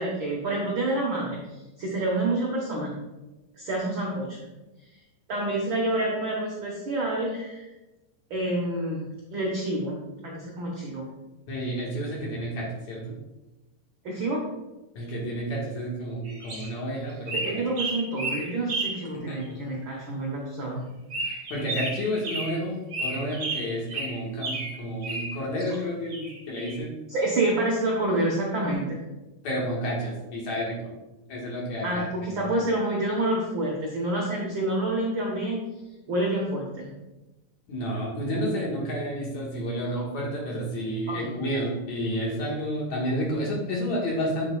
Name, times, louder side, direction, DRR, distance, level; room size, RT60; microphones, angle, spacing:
voice 1, 0.0-1.4 1.8-2.9 3.6-4.4 5.3-7.6 8.3-11.1 14.0-14.5 17.4-20.9 27.1-29.0 31.8-35.6 36.1-36.9 41.1-41.3, right 1 dB, 65° right, -3 dB, 1.2 m, -28 dB
voice 2, 11.5-13.2 15.0-17.6 19.3-19.6 21.2-26.9 29.4-30.9 31.3-32.0 32.3-32.5 37.7-44.5, equal, 60° left, -3 dB, 2.7 m, -30 dB
sound 1, 16.2-16.7 17.3-19.1 19.4-19.5 21.1-22.6 22.9-25.8 26.1-26.8, right 2 dB, 40° right, 2.2 m, -32 dB
8.5 x 7.7 x 2.3 m, 1.0 s
omnidirectional pair, 3.9 m